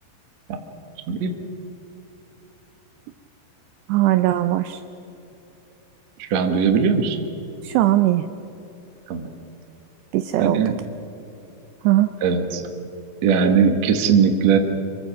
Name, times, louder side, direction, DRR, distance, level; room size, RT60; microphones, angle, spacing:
voice 1, 3.9-4.8 7.6-8.3 10.1-10.6 11.8-12.1, right 15 dB, 80° right, 10 dB, 2.6 m, -19 dB
voice 2, 6.2-7.2 9.1-9.3 10.4-10.8 12.2-12.6 13.2-14.6, right 6 dB, 65° right, 5 dB, 1.7 m, -19 dB
26.0 x 23.5 x 5.9 m, 2.9 s
omnidirectional pair, 5.4 m